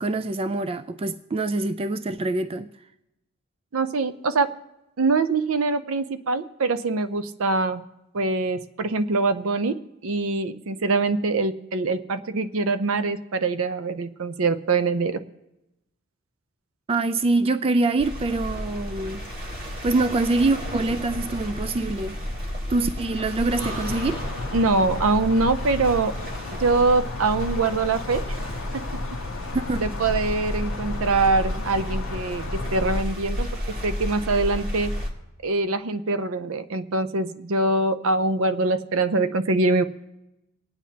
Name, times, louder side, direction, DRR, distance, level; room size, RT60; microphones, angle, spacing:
voice 1, 0.0-2.7 16.9-19.2 19.8-22.2 22.7-24.2 29.5-29.9, right 2 dB, 25° right, 0.3 m, -24 dB
voice 2, 3.7-4.5 5.0-7.8 8.1-15.2 24.5-26.1 26.6-28.2 29.8-34.9 35.4-39.8, right 3 dB, 70° right, 0.6 m, -24 dB
sound 1, 18.0-35.1, left 1 dB, 45° right, 2.1 m, -32 dB
sound 2, 23.5-33.0, left 4 dB, 65° left, 0.6 m, -36 dB
sound 3, 23.6-27.4 27.8-28.2, right 4 dB, 85° right, 5.4 m, -45 dB
27.0 x 9.2 x 2.8 m
head